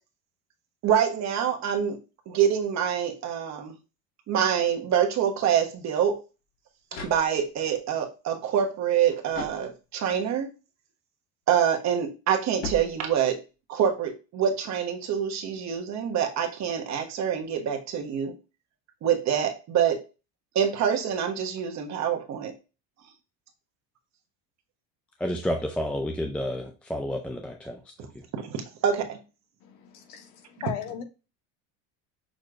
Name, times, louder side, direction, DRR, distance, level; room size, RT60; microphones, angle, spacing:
voice 1, 0.8-2.0 2.3-3.7 4.3-6.2 7.0-10.5 11.5-13.4 13.7-18.3 19.0-20.0 20.5-22.5 28.3-29.2, right 8 dB, 45° right, 1.2 m, -26 dB
sound 1, 6.4-7.7 9.3-10.2 12.6-13.5, left 4 dB, 60° left, 2.0 m, -40 dB
voice 2, 25.2-27.8, equal, 5° left, 0.4 m, -30 dB
voice 3, 29.6-31.0, left 8 dB, 75° left, 1.2 m, -37 dB
6.3 x 3.0 x 2.5 m
cardioid pair, 130°, 37 cm